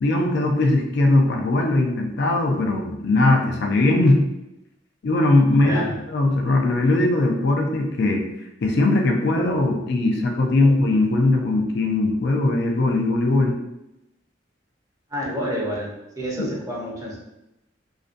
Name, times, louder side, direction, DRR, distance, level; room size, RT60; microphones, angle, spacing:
voice 1, 0.0-4.2 5.0-5.8 6.1-8.2 8.6-13.5 16.4-16.5, left 2 dB, 65° left, 1 dB, 0.4 m, -20 dB
voice 2, 5.6-5.9 10.6-10.8 15.1-17.2, equal, 20° right, -4 dB, 0.6 m, -29 dB
2.4 x 2.2 x 2.5 m, 0.89 s
head